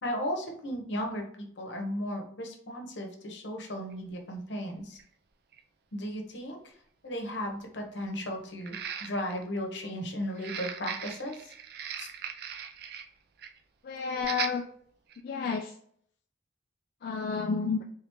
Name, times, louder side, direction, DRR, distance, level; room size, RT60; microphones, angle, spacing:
voice 1, 0.0-5.0 5.9-6.7 7.0-11.5 12.0-12.1, equal, 75° left, 3 dB, 0.9 m, -35 dB
sound 1, 3.9-4.0 5.0-5.1 5.5-5.6 8.6-9.4 10.3-13.1 13.4-13.6 14.2-14.6 15.1-15.2, right 7 dB, 55° right, 0.4 m, -38 dB
voice 2, 13.8-14.6 15.2-15.7 17.0-17.8, left 5 dB, 50° left, 3 dB, 0.3 m, -30 dB
3.5 x 3.5 x 3.0 m, 0.63 s
head